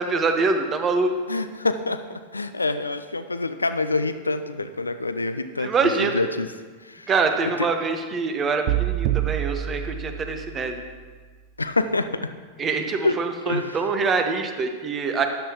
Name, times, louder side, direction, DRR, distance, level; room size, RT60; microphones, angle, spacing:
voice 1, 0.0-1.1 5.6-6.2 7.1-10.8 12.6-15.3, right 4 dB, 25° right, 6 dB, 1.1 m, -24 dB
voice 2, 1.3-2.0 2.3-5.7 6.0-6.5 6.8-7.1 7.6-7.7 11.6-12.3 13.0-13.1 13.5-13.8, left 3 dB, 80° left, 10 dB, 0.5 m, -26 dB
sound 1, 8.7-10.8, right 13 dB, 45° right, 0.4 m, -26 dB
13.5 x 10.0 x 3.0 m, 1.5 s
figure-of-eight pair, 90°, 0 cm